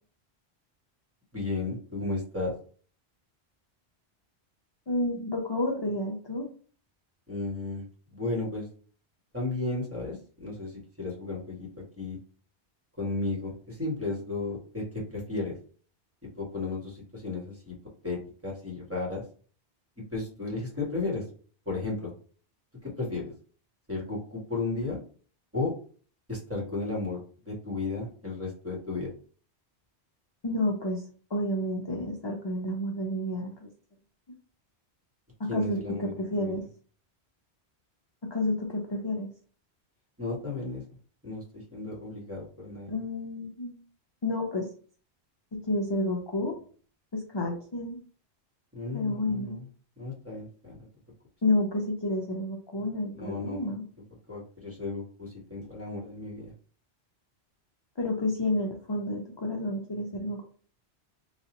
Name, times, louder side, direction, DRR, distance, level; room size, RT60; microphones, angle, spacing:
voice 1, 1.3-2.5 7.3-7.8 8.1-8.7 9.3-12.2 13.0-15.6 16.4-17.7 18.0-19.2 20.1-21.2 21.6-22.1 22.8-23.2 23.9-25.0 25.5-25.7 26.3-27.2 27.4-29.1 35.5-36.6 40.2-40.8 41.2-43.0 48.7-49.6 50.0-50.9 53.1-53.7 54.3-56.5, left 3 dB, 15° right, -3 dB, 1.1 m, -34 dB
voice 2, 4.9-6.5 30.4-31.0 31.3-33.7 35.4-36.6 38.2-39.3 42.9-43.8 44.2-44.7 45.5-46.6 47.1-48.0 48.9-49.6 51.4-53.9 58.0-60.4, left 1 dB, 35° left, 0 dB, 0.4 m, -30 dB
4.0 x 2.3 x 2.9 m, 0.42 s
omnidirectional pair, 1.1 m